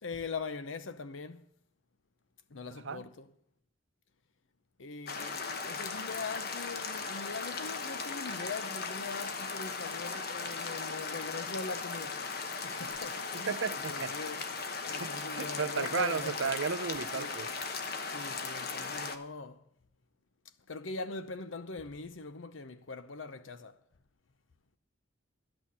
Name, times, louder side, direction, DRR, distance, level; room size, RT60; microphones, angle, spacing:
voice 1, 0.0-1.5 2.5-3.3 4.8-14.4 14.8-16.6 17.1-17.5 18.1-19.6 20.7-23.8, left 4 dB, 85° left, 0.8 m, -42 dB
sound 1, 5.1-19.1, left 4 dB, 55° left, 1.1 m, -37 dB
voice 2, 13.5-14.1 15.0-17.5, right 5 dB, 80° right, 0.6 m, -34 dB
11.5 x 6.2 x 8.6 m
head